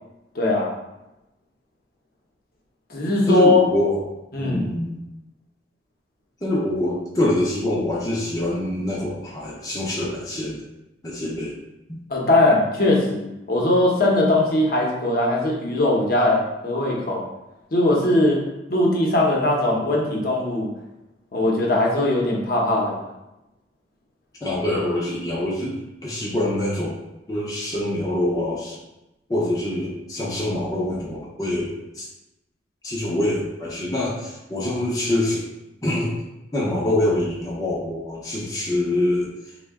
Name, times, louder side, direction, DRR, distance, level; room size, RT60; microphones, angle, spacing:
voice 1, 0.3-0.7 2.9-3.6 4.3-4.6 12.1-17.2 17.7-18.4 18.7-20.7 21.3-23.0, left 2 dB, 55° left, -2 dB, 0.7 m, -20 dB
voice 2, 3.3-4.0 4.4-5.0 6.4-10.6 11.0-11.6 11.9-12.0 24.4-25.7 26.0-26.9 27.3-28.8 29.3-32.1 32.8-35.4 35.8-36.1 36.5-39.3, left 1 dB, 20° left, -5 dB, 0.5 m, -25 dB
3.6 x 2.1 x 3.5 m, 0.93 s
head